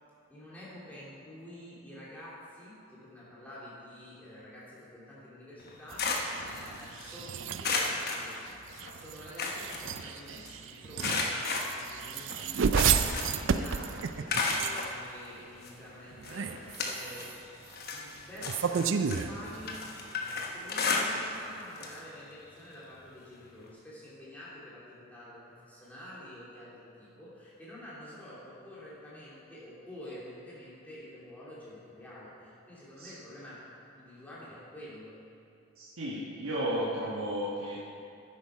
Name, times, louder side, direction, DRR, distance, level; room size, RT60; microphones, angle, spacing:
voice 1, 0.3-8.6 8.9-17.4 17.9-35.2, left 1 dB, 5° left, -9 dB, 2.5 m, -48 dB
sound 1, 5.6-7.2 7.6-8.9 9.2-10.5 11.0-13.5 13.8-14.9 15.6-15.7 16.2-17.4 17.7-21.5 21.8-22.0 22.3-22.4 23.7-23.8, left 3 dB, 45° left, 1.0 m, -33 dB
sound 2, 5.9-15.1 16.1-17.4 18.4-20.0, right 6 dB, 60° right, 0.4 m, -33 dB
voice 2, 35.8-37.8, equal, 75° right, -7 dB, 1.3 m, -33 dB
10.5 x 8.5 x 4.8 m, 2.5 s
head